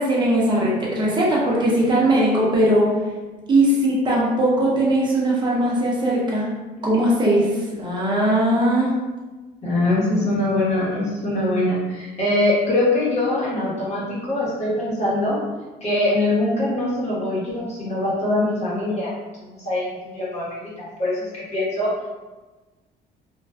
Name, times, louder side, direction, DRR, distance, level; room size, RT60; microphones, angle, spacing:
voice 1, 0.0-2.9 3.5-6.5 6.8-8.9, right 1 dB, 25° right, -4 dB, 0.8 m, -19 dB
voice 2, 9.6-15.4 15.8-22.1, left 1 dB, 40° left, -7 dB, 1.1 m, -23 dB
2.5 x 2.2 x 2.3 m, 1.2 s
cardioid pair, 110°, 17 cm